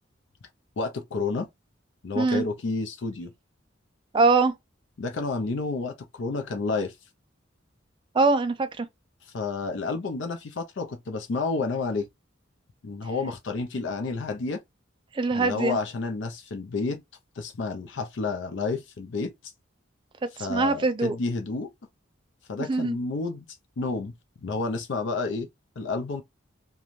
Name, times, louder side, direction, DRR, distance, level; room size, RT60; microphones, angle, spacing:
voice 1, 0.8-1.5 2.0-3.3 5.0-7.0 9.2-12.1 12.8-14.6 15.3-17.0 17.4-19.3 20.4-21.7 22.5-23.5 23.8-24.1 24.4-25.5 25.8-26.2, left 3 dB, 65° left, 0.4 m, -30 dB
voice 2, 2.1-2.5 4.1-4.5 8.1-8.9 15.1-15.8 20.4-21.2 22.7-23.0, right 3 dB, 25° right, 0.3 m, -23 dB
2.5 x 2.2 x 2.9 m
head